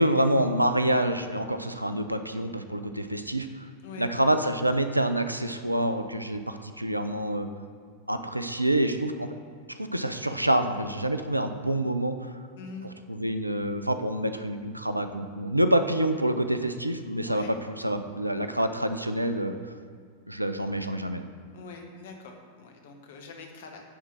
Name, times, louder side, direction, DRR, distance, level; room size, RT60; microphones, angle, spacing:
voice 1, 0.0-3.5 4.0-7.5 8.1-9.3 9.7-12.3 13.1-19.5 20.3-21.3, right 1 dB, 85° right, 9 dB, 0.4 m, -27 dB
voice 2, 21.5-23.8, left 4 dB, 55° left, 3 dB, 1.1 m, -44 dB
9.9 x 3.7 x 6.2 m, 2.1 s
figure-of-eight pair, 90°, 0 cm